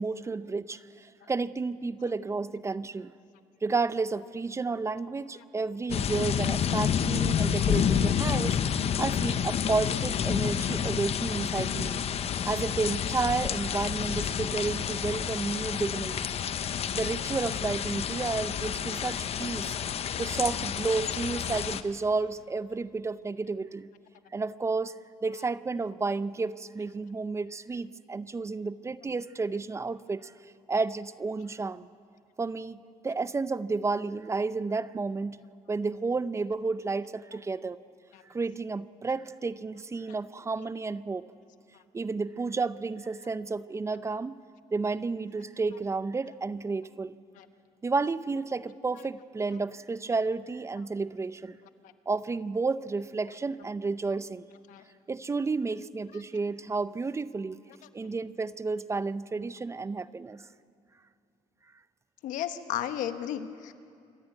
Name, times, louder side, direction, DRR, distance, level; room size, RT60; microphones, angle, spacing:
voice 1, 0.0-3.1 3.6-12.0 12.4-16.3 16.9-19.8 20.2-23.9 24.3-24.9 25.2-30.3 30.7-31.9 32.4-35.4 35.7-37.8 38.3-41.3 41.9-44.4 44.7-47.1 47.8-51.6 52.1-54.4 55.1-57.6 57.9-60.5, right 4 dB, 20° right, 16 dB, 0.5 m, -31 dB
sound 1, 5.9-21.8, left 8 dB, 50° left, 0.8 m, -29 dB
voice 2, 62.2-63.7, left 11 dB, 85° left, 10 dB, 1.1 m, -34 dB
26.0 x 12.5 x 9.1 m, 2.4 s
cardioid pair, 105°, 13 cm